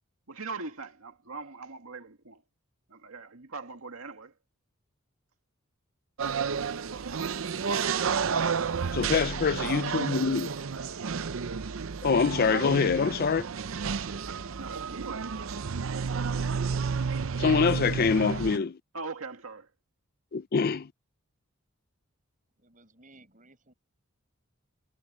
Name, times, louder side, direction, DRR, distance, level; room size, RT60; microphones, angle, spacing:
voice 1, 0.3-2.4 2.9-4.3 12.5-12.7 14.2-15.3 18.9-19.7, right 4 dB, 85° right, 2.0 m, -41 dB
sound 1, 6.2-18.6, right 6 dB, 65° right, 0.6 m, -31 dB
voice 2, 8.9-10.5 12.0-13.5 17.4-18.8 20.3-20.9, left 5 dB, 45° left, 0.5 m, -25 dB
voice 3, 22.6-23.7, right 2 dB, 40° right, 6.5 m, -58 dB
head